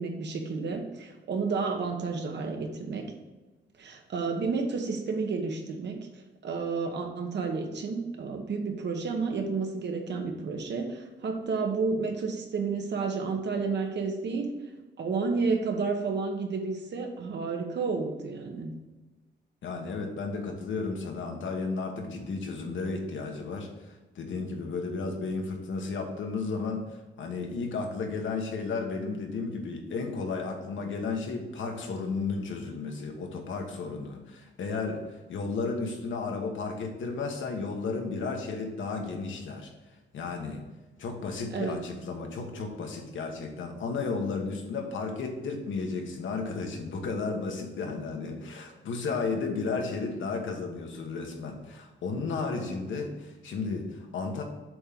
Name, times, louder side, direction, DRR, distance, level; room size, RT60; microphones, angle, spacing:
voice 1, 0.0-3.1 3.8-6.0 6.4-14.5 15.0-18.7 41.5-41.8, right 4 dB, 65° right, 3 dB, 1.2 m, -31 dB
voice 2, 19.6-26.8 27.2-35.0 35.3-39.7 40.1-40.6 41.0-54.4, left 4 dB, 90° left, 2 dB, 1.5 m, -33 dB
7.7 x 3.9 x 5.9 m, 1.2 s
wide cardioid pair, 170°, 19 cm